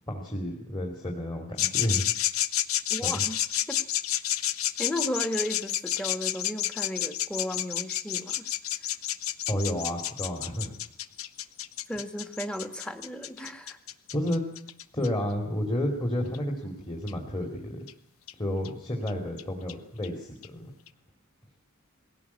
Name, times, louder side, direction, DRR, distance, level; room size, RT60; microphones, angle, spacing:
voice 1, 0.1-2.0 3.0-3.2 9.5-10.8 14.1-14.5 14.9-17.8 18.4-20.7, equal, 20° left, 0 dB, 2.7 m, -31 dB
sound 1, 1.6-15.1 16.3-16.4 17.1-17.2 17.9-18.0 18.3-18.4 18.6-18.7 19.1-19.2 19.4-19.5 19.7-19.8 20.0-20.1 20.4-20.5 20.9-21.0, left 12 dB, 90° left, 0.8 m, -30 dB
voice 2, 2.9-3.4 3.7-3.8 4.8-8.5 11.9-13.8, equal, 5° left, 8 dB, 1.6 m, -34 dB
20.0 x 17.0 x 8.4 m, 0.74 s
head